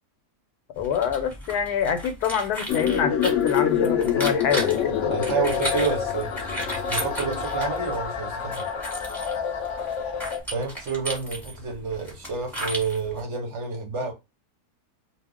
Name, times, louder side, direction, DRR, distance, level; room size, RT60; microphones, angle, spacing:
voice 1, 0.8-5.2, left 7 dB, 80° left, 1.1 m, -26 dB
sound 1, 0.8-13.2, equal, ahead, 1.0 m, -36 dB
sound 2, 2.7-10.4, left 8 dB, 60° left, 0.9 m, -26 dB
voice 2, 5.1-6.3 6.9-8.7 10.5-14.1, right 5 dB, 60° right, 0.9 m, -29 dB
2.4 x 2.4 x 3.4 m
omnidirectional pair, 1.6 m